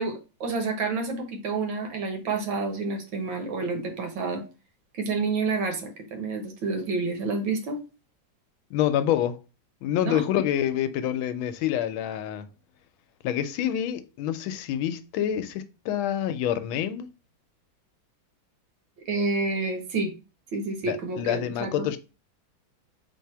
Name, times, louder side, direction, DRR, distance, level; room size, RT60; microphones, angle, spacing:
voice 1, 0.0-4.4 4.9-7.8 10.0-10.2 19.1-20.1 20.5-21.9, right 3 dB, 75° right, 1.8 m, -29 dB
voice 2, 8.7-9.4 9.8-12.5 13.2-17.1 20.8-22.0, left 10 dB, 85° left, 1.4 m, -27 dB
4.3 x 2.7 x 4.5 m
omnidirectional pair, 2.2 m